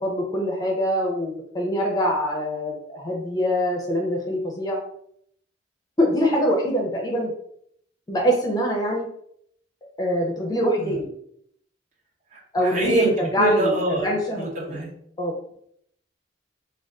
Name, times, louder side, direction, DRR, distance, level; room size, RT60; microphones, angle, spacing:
voice 1, 0.0-4.8 6.0-7.3 8.1-9.1 10.0-11.1 12.5-14.8 15.2-15.3, equal, 20° left, 0 dB, 0.5 m, -24 dB
voice 2, 12.3-14.1 14.3-14.9, right 1 dB, 40° right, -1 dB, 0.7 m, -26 dB
2.5 x 2.3 x 3.4 m, 0.69 s
head